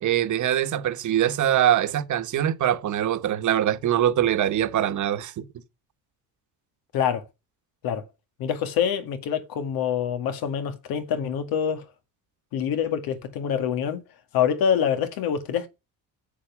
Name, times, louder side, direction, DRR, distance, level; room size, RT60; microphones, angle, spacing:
voice 1, 0.0-5.4, right 11 dB, 55° right, 1.5 m, -23 dB
voice 2, 6.9-7.2 7.8-8.1 8.4-11.9 12.5-14.0 14.3-15.7, left 8 dB, 75° left, 2.1 m, -25 dB
8.5 x 7.6 x 7.3 m
cardioid pair, 115°, 36 cm